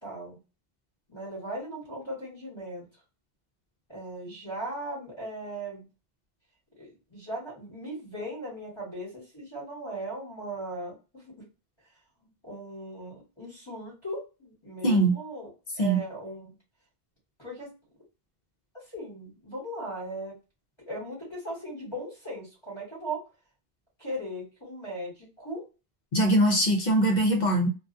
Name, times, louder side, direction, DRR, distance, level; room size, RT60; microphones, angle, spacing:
voice 1, 0.0-0.4 1.1-2.9 3.9-5.9 6.8-11.3 12.4-15.5 15.8-16.5 17.4-17.7 18.9-20.3 20.9-23.2 24.0-25.6, right 1 dB, 30° left, -5 dB, 1.2 m, -38 dB
voice 2, 14.8-15.2 15.8-16.0 26.1-27.7, right 1 dB, 50° left, 2 dB, 0.7 m, -22 dB
2.4 x 2.3 x 2.5 m, 0.31 s
omnidirectional pair, 1.0 m